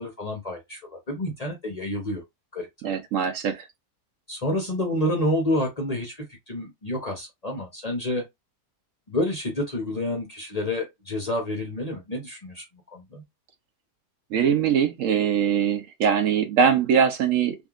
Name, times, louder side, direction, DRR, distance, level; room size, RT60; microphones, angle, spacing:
voice 1, 0.0-2.2 2.5-3.0 4.3-8.2 9.1-12.6 12.9-13.2, left 1 dB, 40° left, 0.6 m, -29 dB
voice 2, 2.8-3.7 14.3-17.6, right 7 dB, 70° right, 0.7 m, -22 dB
3.5 x 2.6 x 2.3 m
omnidirectional pair, 1.8 m